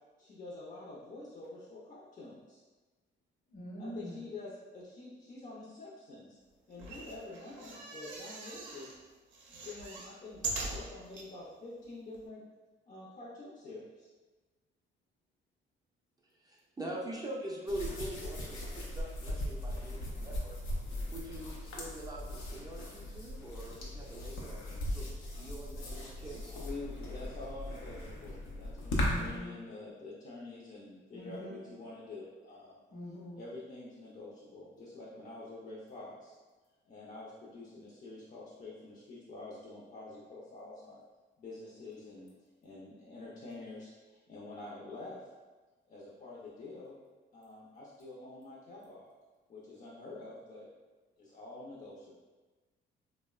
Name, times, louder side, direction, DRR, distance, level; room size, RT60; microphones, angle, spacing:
voice 1, 0.2-2.6 3.8-6.4 6.7-9.0 9.5-10.4 10.7-12.4 12.9-14.1 26.3-32.8 33.3-36.4 36.8-41.0 41.4-42.3 42.6-45.3 45.9-47.0 47.3-49.0 49.5-50.7 51.2-52.2, left 2 dB, 40° left, -7 dB, 0.5 m, -47 dB
voice 2, 3.5-4.2 29.0-29.5 31.1-31.6 32.9-33.4, equal, 65° left, -5 dB, 0.9 m, -43 dB
sound 1, 6.7-9.0 9.3-11.3 11.8-11.9 12.1-12.2, right 3 dB, 70° right, 0.5 m, -41 dB
voice 3, 16.4-20.6 21.1-26.5, right 1 dB, 20° right, -4 dB, 0.4 m, -43 dB
sound 2, 17.7-29.4, left 1 dB, 85° left, 0.6 m, -38 dB
2.8 x 2.0 x 2.3 m, 1.3 s
cardioid pair, 90°, 20 cm